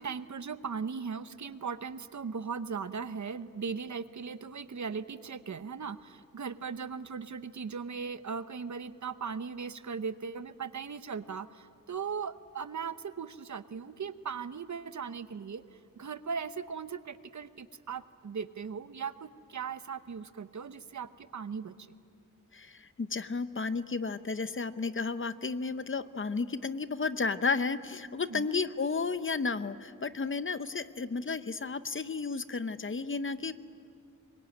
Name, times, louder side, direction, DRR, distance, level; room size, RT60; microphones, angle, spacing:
voice 1, 0.0-15.6 16.0-21.9 28.3-28.5, right 6 dB, 60° right, 12 dB, 0.9 m, -38 dB
voice 2, 22.5-33.5, left 4 dB, 40° left, 12 dB, 0.8 m, -33 dB
26.0 x 23.0 x 9.1 m, 2.3 s
wide cardioid pair, 110°, 33 cm